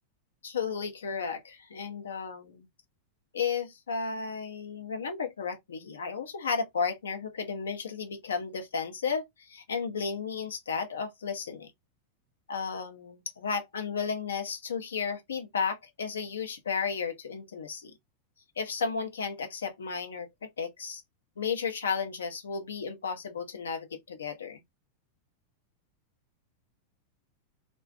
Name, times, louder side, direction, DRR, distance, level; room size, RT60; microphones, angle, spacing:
voice 1, 0.4-2.7 3.3-11.7 12.5-17.9 18.6-21.0 21.4-24.6, left 5 dB, 70° left, 0.5 m, -33 dB
2.4 x 2.1 x 2.4 m
figure-of-eight pair, 90°, 0 cm